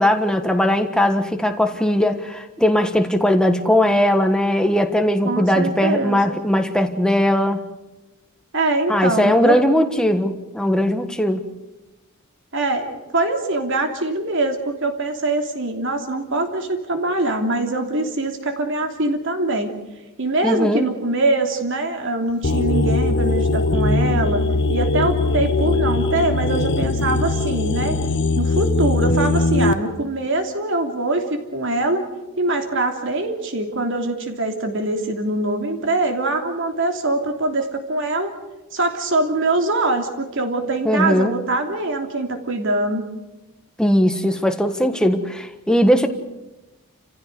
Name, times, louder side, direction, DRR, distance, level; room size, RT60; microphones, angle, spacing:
voice 1, 0.0-7.6 8.9-11.5 20.4-20.9 40.8-41.4 43.8-46.1, left 1 dB, 5° left, 6 dB, 1.4 m, -19 dB
voice 2, 5.2-6.2 8.5-9.6 12.5-19.7 20.2-24.4 24.7-28.0 28.3-32.0 32.4-38.3 38.7-43.0, right 2 dB, 60° right, 4 dB, 3.1 m, -23 dB
sound 1, 22.4-29.7, left 2 dB, 55° left, 1.1 m, -20 dB
29.5 x 15.5 x 8.0 m, 1.0 s
head